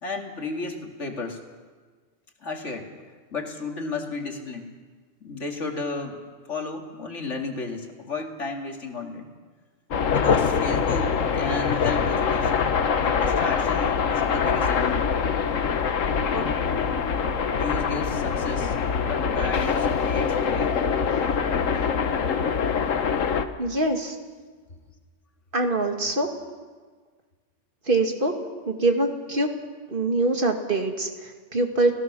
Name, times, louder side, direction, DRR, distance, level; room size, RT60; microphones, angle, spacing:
voice 1, 0.0-1.4 2.4-2.9 3.3-4.7 5.2-6.2 6.5-9.3 10.1-12.6 12.9-15.1 16.2-16.6 17.5-18.7 19.0-20.8, left 3 dB, 70° left, 2 dB, 2.6 m, -33 dB
sound 1, 9.9-23.4, left 6 dB, 90° left, 1.4 m, -24 dB
voice 2, 23.6-24.2 25.5-26.3 27.9-28.3 28.7-29.5 29.9-31.9, right 2 dB, 45° right, 3 dB, 2.3 m, -24 dB
29.5 x 17.0 x 6.2 m, 1.5 s
omnidirectional pair, 1.3 m